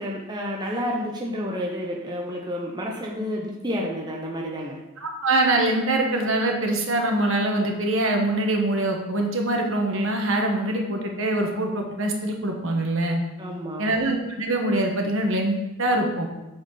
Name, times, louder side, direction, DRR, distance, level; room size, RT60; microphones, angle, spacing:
voice 1, 0.0-4.8 13.4-13.9, equal, 20° right, -1 dB, 0.7 m, -30 dB
voice 2, 5.0-13.2 13.8-16.3, right 1 dB, 60° right, 2 dB, 1.3 m, -24 dB
8.1 x 4.4 x 5.6 m, 1.0 s
head